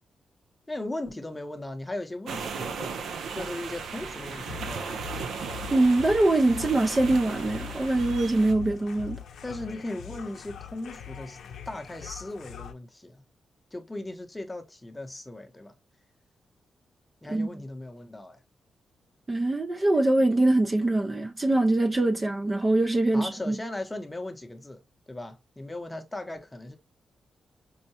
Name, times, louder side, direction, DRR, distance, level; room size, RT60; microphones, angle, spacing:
voice 1, 0.7-3.0 3.3-5.0 9.4-11.4 11.7-13.2 13.7-15.8 17.2-18.4 23.1-24.8 25.1-26.8, left 2 dB, 10° left, 0.7 m, -37 dB
sound 1, 2.3-8.5, right 5 dB, 85° right, 0.6 m, -36 dB
sound 2, 4.1-12.7, left 9 dB, 75° left, 0.5 m, -42 dB
voice 2, 5.7-9.2 17.3-17.6 19.3-23.6, right 2 dB, 20° right, 0.4 m, -23 dB
5.4 x 2.2 x 2.8 m
wide cardioid pair, 130°, 0 cm